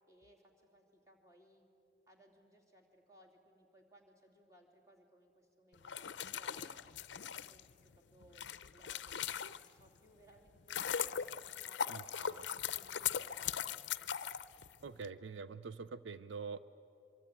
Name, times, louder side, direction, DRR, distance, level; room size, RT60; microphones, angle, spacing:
voice 1, 0.1-1.7 2.1-6.8 7.3-10.9 11.3-13.8, right 1 dB, 15° right, -1 dB, 3.1 m, -65 dB
sound 1, 5.8-9.9 10.4-15.1, left 8 dB, 70° left, 0.6 m, -40 dB
voice 2, 11.9-12.5 14.8-16.6, right 5 dB, 75° right, 14 dB, 0.5 m, -45 dB
24.0 x 23.5 x 9.2 m, 2.8 s
head